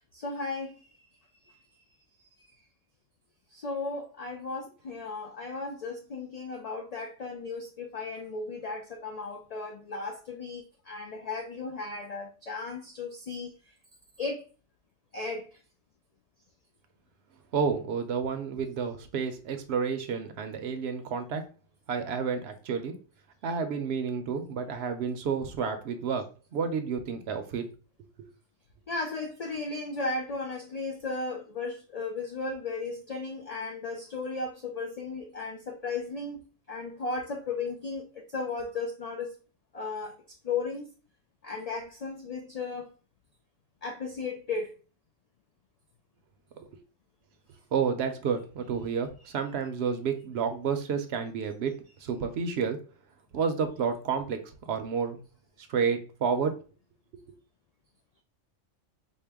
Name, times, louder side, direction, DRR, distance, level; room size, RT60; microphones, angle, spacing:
voice 1, 0.1-0.8 3.5-13.5 14.2-14.4 15.1-15.5 28.9-36.4 36.7-39.3 39.7-40.1 40.4-40.9 41.4-42.9 43.8-44.7, left 3 dB, 80° left, 0.3 m, -35 dB
voice 2, 17.5-21.4 21.9-22.9 23.4-26.3 26.5-27.6 46.6-46.7 47.7-51.7 52.0-52.8 53.3-54.4 54.7-55.2 55.7-56.5, right 6 dB, 65° right, 0.8 m, -30 dB
4.4 x 2.1 x 3.4 m
omnidirectional pair, 1.3 m